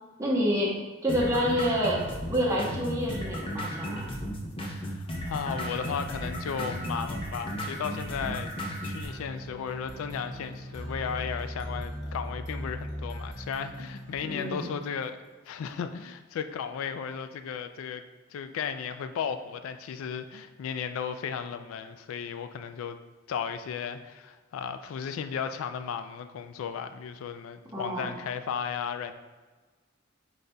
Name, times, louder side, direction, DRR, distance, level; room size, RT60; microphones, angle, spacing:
voice 1, 0.2-0.8 1.0-2.0 2.3-4.1 14.2-14.6 27.7-28.1, equal, 15° right, -4 dB, 0.9 m, -28 dB
sound 1, 1.1-9.1, equal, 25° left, 0.6 m, -35 dB
voice 2, 4.7-8.5 8.8-15.2 15.5-18.0 18.3-23.0 23.3-29.1, left 7 dB, 85° left, 10 dB, 0.3 m, -35 dB
sound 2, 9.0-14.7, equal, 65° right, 1.0 m, -39 dB
4.9 x 4.0 x 2.2 m, 1.3 s
head